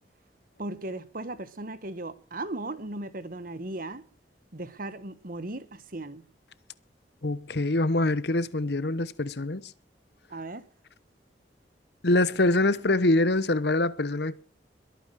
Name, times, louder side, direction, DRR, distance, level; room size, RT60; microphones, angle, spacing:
voice 1, 0.6-4.0 4.5-6.2 10.3-10.7, right 2 dB, 50° right, 1.4 m, -37 dB
voice 2, 7.2-9.7 12.0-14.4, left 2 dB, 65° left, 1.0 m, -24 dB
22.5 x 9.3 x 6.4 m
head